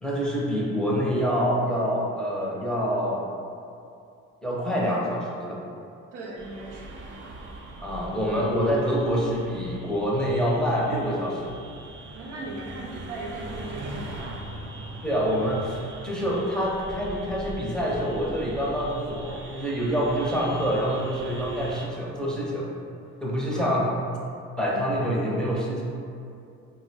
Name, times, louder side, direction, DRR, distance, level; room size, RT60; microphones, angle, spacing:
voice 1, 0.0-3.3 4.4-5.6 7.8-11.6 15.0-15.8 16.0-22.7 23.2-24.0 24.6-25.8, equal, ahead, -5 dB, 0.6 m, -26 dB
voice 2, 6.1-7.0 12.1-14.4 23.5-24.0, right 2 dB, 85° right, -2 dB, 0.6 m, -38 dB
sound 1, 6.4-21.9, right 2 dB, 40° right, 0.4 m, -41 dB
2.6 x 2.2 x 4.0 m, 2.5 s
cardioid pair, 90°, 30 cm